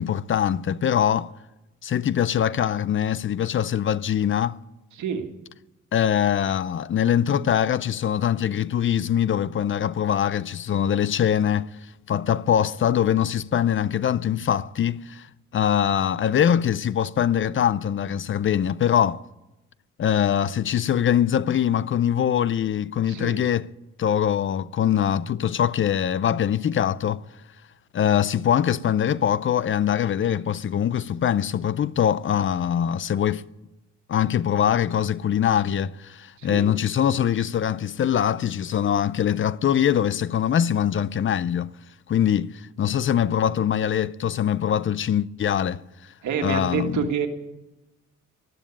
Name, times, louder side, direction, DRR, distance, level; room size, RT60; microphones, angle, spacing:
voice 1, 0.0-1.3 1.8-4.6 5.9-11.7 12.1-15.3 15.5-19.2 20.0-23.7 24.0-27.2 27.9-33.4 34.1-41.7 42.1-45.8 46.4-47.0, left 9 dB, 40° left, 0.6 m, -23 dB
voice 2, 5.0-5.3 23.1-23.4 36.4-36.7 46.2-47.3, right 7 dB, 70° right, 1.9 m, -27 dB
13.0 x 12.5 x 8.7 m
cardioid pair, 90°, 30 cm